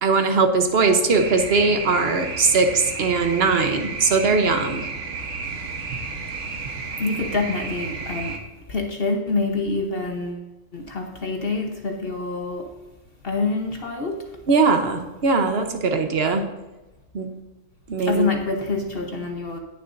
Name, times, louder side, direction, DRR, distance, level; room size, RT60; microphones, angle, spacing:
voice 1, 0.0-4.9 14.5-16.5 17.1-17.3 17.9-18.3, right 4 dB, 50° right, 6 dB, 1.2 m, -20 dB
sound 1, 1.1-8.4, right 4 dB, 70° right, 1.6 m, -32 dB
voice 2, 7.0-8.4 8.7-10.4 10.7-12.7 13.2-14.2 18.0-19.6, left 3 dB, 50° left, 2 dB, 1.2 m, -26 dB
18.0 x 7.1 x 2.6 m, 1.1 s
omnidirectional pair, 1.3 m